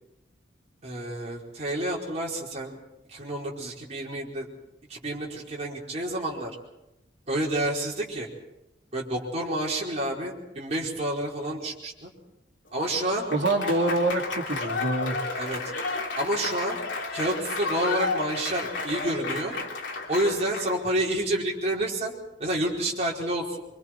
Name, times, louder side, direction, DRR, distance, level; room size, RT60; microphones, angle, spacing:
voice 1, 0.8-2.8 3.1-4.5 4.9-6.5 7.3-8.3 8.9-12.1 12.7-13.3 15.4-15.6 16.1-16.8 17.1-19.5 20.1-22.1 22.4-23.6, right 1 dB, 35° right, -3 dB, 4.8 m, -29 dB
Applause / Crowd, 12.8-20.9, left 3 dB, 85° left, 2.9 m, -32 dB
voice 2, 13.3-15.4, right 2 dB, 75° right, 1 dB, 2.7 m, -26 dB
26.0 x 25.0 x 4.6 m, 0.92 s
head